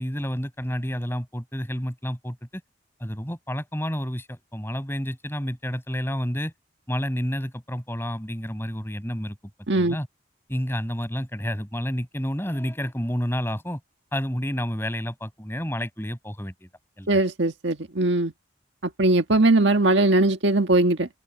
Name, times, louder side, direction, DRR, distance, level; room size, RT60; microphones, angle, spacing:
voice 1, 0.0-2.6 3.0-6.5 6.9-9.4 9.7-10.1 10.5-13.8 14.1-16.7 17.0-17.2, equal, 10° left, 5.9 m, -30 dB
voice 2, 17.1-18.3 19.0-21.1, right 2 dB, 70° right, 1.6 m, -20 dB
open air
head